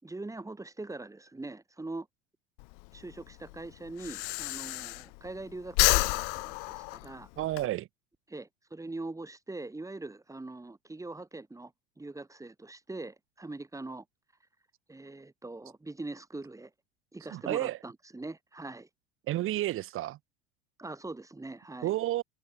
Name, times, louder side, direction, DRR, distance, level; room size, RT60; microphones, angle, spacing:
voice 1, 0.0-2.1 2.9-7.3 8.3-14.1 14.9-16.7 17.1-18.9 20.8-21.9, right 2 dB, 10° right, 5.1 m, -42 dB
Breathing, 2.6-5.4 5.7-7.6, left 40 dB or more, 50° left, 1.3 m, -29 dB
voice 2, 7.4-7.9 17.3-17.8 19.3-20.2 21.8-22.2, right 15 dB, 40° right, 1.7 m, -31 dB
figure-of-eight pair, 75°, 34 cm